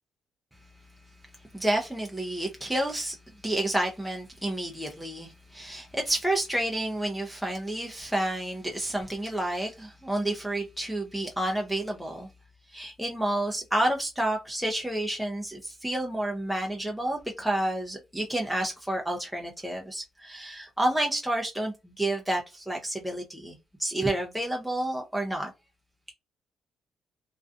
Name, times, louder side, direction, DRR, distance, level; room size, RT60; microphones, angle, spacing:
voice 1, 1.5-3.2 3.4-12.3 12.7-25.5, right 1 dB, 5° right, 0.5 m, -30 dB
2.5 x 2.2 x 2.5 m
cardioid pair, 90°, 0 cm